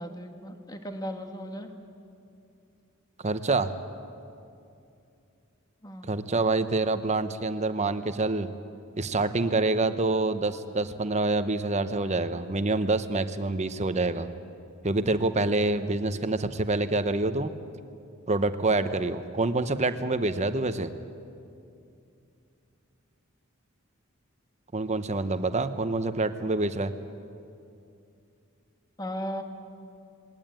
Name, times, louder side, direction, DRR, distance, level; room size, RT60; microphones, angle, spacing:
voice 1, 0.0-1.7 5.8-6.1 29.0-29.4, equal, 20° left, 6 dB, 1.5 m, -36 dB
voice 2, 3.2-3.7 6.0-8.5 9.0-14.3 14.8-17.5 18.3-20.9 24.7-26.9, right 2 dB, 35° right, 11 dB, 1.0 m, -26 dB
21.5 x 18.0 x 9.1 m, 2.6 s
head